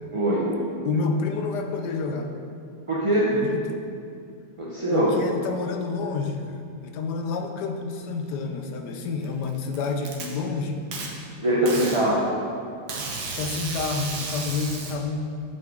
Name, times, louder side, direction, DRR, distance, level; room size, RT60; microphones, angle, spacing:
voice 1, 0.1-0.5 2.9-3.3 4.6-5.1 11.4-12.3, right 1 dB, 30° right, -6 dB, 0.6 m, -22 dB
voice 2, 0.8-2.4 3.3-3.8 4.9-10.8 13.4-15.6, left 4 dB, 70° left, 5 dB, 1.3 m, -29 dB
Packing tape duct tape, 9.2-10.3 10.9-11.1 11.7-12.0 12.9-14.9, right 3 dB, 65° right, 1.6 m, -33 dB
8.5 x 8.1 x 3.7 m, 2.4 s
omnidirectional pair, 1.9 m